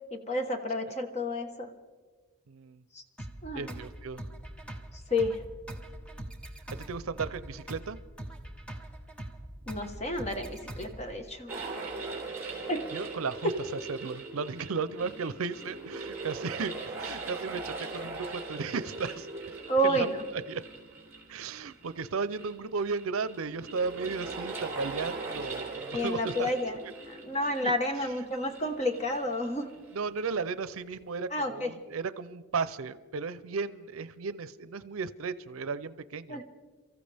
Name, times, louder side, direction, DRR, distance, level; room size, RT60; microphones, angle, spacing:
voice 1, 0.1-1.7 2.9-3.0 3.4-3.7 5.1-5.4 9.7-11.5 12.7-12.8 19.7-20.2 25.9-26.8 27.1-29.7 31.3-31.7 36.3-36.4, equal, 30° left, 5 dB, 1.2 m, -30 dB
voice 2, 2.5-2.8 3.5-4.2 6.9-8.0 12.9-13.5 13.9-19.6 19.8-20.0 20.5-20.6 21.3-26.5 28.0-28.2 29.9-36.4, right 5 dB, 80° right, 15 dB, 0.6 m, -35 dB
sound 1, 3.2-11.2, right 1 dB, 5° left, 1.0 m, -43 dB
sound 2, 11.5-30.1, right 3 dB, 10° right, 3.6 m, -41 dB
29.0 x 14.5 x 3.4 m, 1.4 s
head